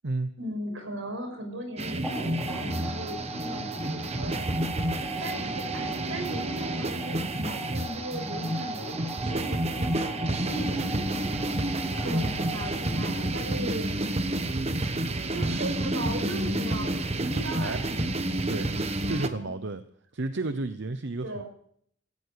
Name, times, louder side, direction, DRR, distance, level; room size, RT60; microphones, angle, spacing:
voice 1, 0.4-4.4 4.9-11.3 12.0-13.9 15.3-18.0 19.0-19.6 21.2-21.4, right 1 dB, 80° right, 5 dB, 5.9 m, -38 dB
sound 1, 1.8-19.3, right 1 dB, 30° right, 1.1 m, -30 dB
sound 2, 2.0-13.4, right 1 dB, 5° right, 3.5 m, -37 dB
voice 2, 19.1-19.8 20.1-21.4, right 2 dB, 60° right, 10 dB, 0.9 m, -32 dB
16.5 x 15.5 x 4.7 m, 0.64 s
head